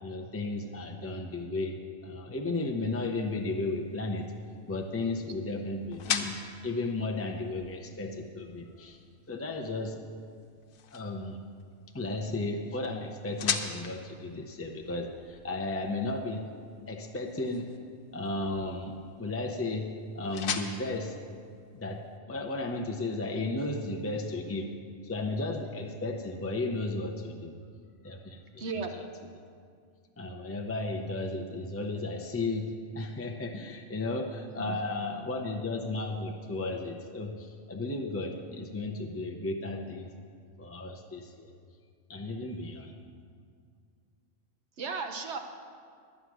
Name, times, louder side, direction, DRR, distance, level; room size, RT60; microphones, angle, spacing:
voice 1, 0.0-1.7 2.0-4.3 4.7-6.4 6.6-9.0 9.3-10.0 10.9-11.4 11.9-16.4 16.9-17.8 18.1-21.2 21.7-22.0 22.3-24.7 25.0-27.5 28.0-29.0 30.2-40.1 40.6-41.5 42.1-42.9, left 2 dB, 25° left, 2 dB, 0.3 m, -34 dB
sound 1, 3.3-22.2, left 7 dB, 85° left, 1.2 m, -41 dB
voice 2, 28.6-28.9 34.6-34.8 44.8-45.4, right 4 dB, 60° right, 5 dB, 1.1 m, -35 dB
11.5 x 9.2 x 6.1 m, 2.1 s
omnidirectional pair, 1.4 m